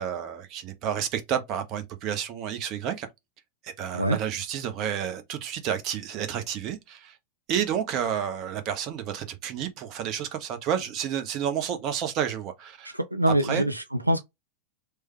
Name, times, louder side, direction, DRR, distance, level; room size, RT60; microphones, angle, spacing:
voice 1, 0.0-3.1 3.6-7.2 7.5-12.9 13.3-13.7, right 9 dB, 40° right, 0.6 m, -30 dB
voice 2, 12.9-14.2, right 1 dB, 85° right, 0.3 m, -24 dB
3.2 x 2.1 x 3.0 m
figure-of-eight pair, 90°, 0 cm